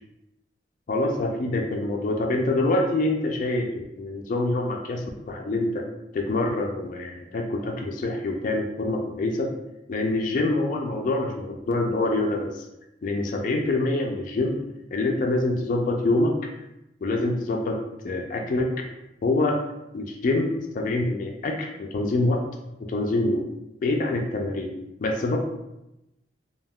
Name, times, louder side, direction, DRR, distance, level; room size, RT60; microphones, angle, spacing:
voice 1, 0.9-5.8 6.1-9.5 9.9-12.6 13.0-14.6 14.9-16.4 17.0-17.8 18.0-18.7 19.2-19.6 19.9-22.4 22.9-23.5 23.8-24.7 25.0-25.4, left 2 dB, 50° left, 1 dB, 0.3 m, -25 dB
3.4 x 2.2 x 2.2 m, 0.91 s
head